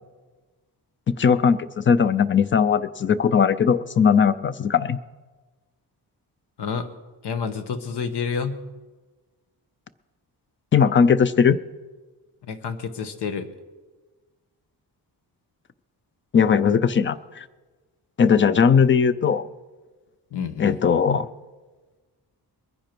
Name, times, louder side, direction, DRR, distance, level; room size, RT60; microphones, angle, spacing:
voice 1, 1.2-5.0 10.7-11.6 16.3-17.4 18.2-19.5 20.6-21.3, left 6 dB, 30° left, 16 dB, 0.4 m, -19 dB
voice 2, 6.6-6.9 7.2-8.6 12.5-13.5 20.3-20.8, left 6 dB, 75° left, 10 dB, 1.2 m, -29 dB
22.0 x 10.0 x 4.6 m, 1.3 s
wide cardioid pair, 170°, 41 cm